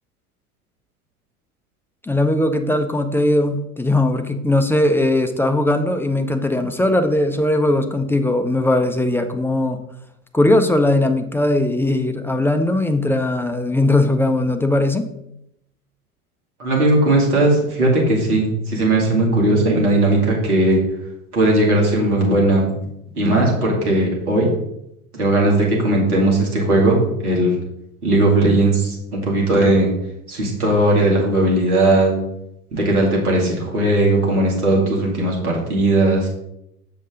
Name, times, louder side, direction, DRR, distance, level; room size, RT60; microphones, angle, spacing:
voice 1, 2.0-9.8 10.3-15.1, left 1 dB, 5° left, 7 dB, 0.5 m, -19 dB
voice 2, 16.6-20.8 21.3-22.7 23.1-24.5 25.1-27.6 28.0-29.9 30.3-32.1 32.7-36.3, right 1 dB, 80° right, -2 dB, 2.6 m, -17 dB
7.3 x 6.8 x 3.7 m, 0.83 s
figure-of-eight pair, 80°, 44 cm